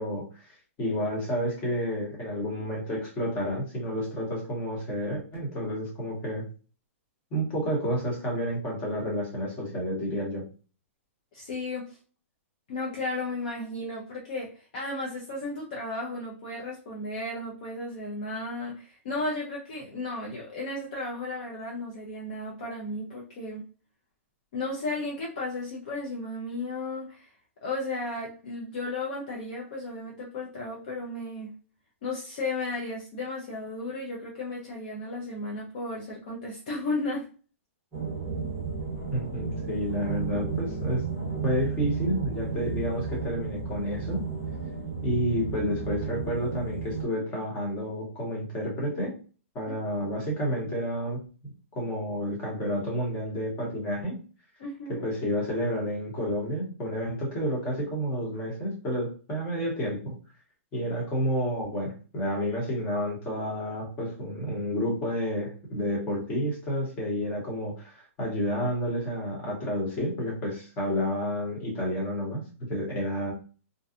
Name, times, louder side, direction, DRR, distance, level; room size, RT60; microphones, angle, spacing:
voice 1, 0.0-6.4 7.3-10.4 39.1-41.0 41.4-44.2 45.0-49.1 49.5-54.2 54.9-60.1 60.7-72.4 72.7-73.3, equal, 15° left, -2 dB, 0.9 m, -30 dB
voice 2, 11.3-12.0 12.7-23.6 24.5-27.3 27.6-31.5 32.0-37.3 54.6-55.0, left 2 dB, 35° left, -3 dB, 0.5 m, -34 dB
sound 1, 37.9-47.0, right 5 dB, 10° right, 0.9 m, -33 dB
2.6 x 2.2 x 2.4 m, 0.37 s
hypercardioid pair, 175°, 8 cm